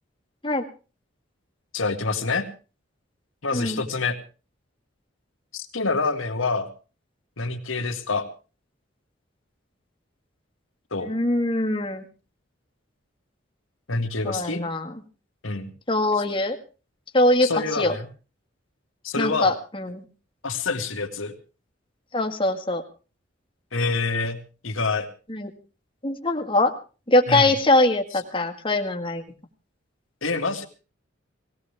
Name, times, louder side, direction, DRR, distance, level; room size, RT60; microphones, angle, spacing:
voice 1, 1.7-2.5 3.4-4.2 5.5-6.7 7.4-8.3 10.9-11.1 13.9-14.6 15.4-15.7 17.4-18.1 19.0-19.5 20.4-21.3 23.7-25.1 27.3-27.5 30.2-30.7, left 3 dB, 85° left, 4 dB, 2.2 m, -26 dB
voice 2, 11.0-12.0 14.2-15.0 15.9-16.6 17.1-17.9 19.2-20.0 22.1-22.8 25.3-25.5 26.0-26.7 27.1-29.2, left 2 dB, 25° left, 3 dB, 1.8 m, -22 dB
19.5 x 17.0 x 3.5 m, 0.34 s
head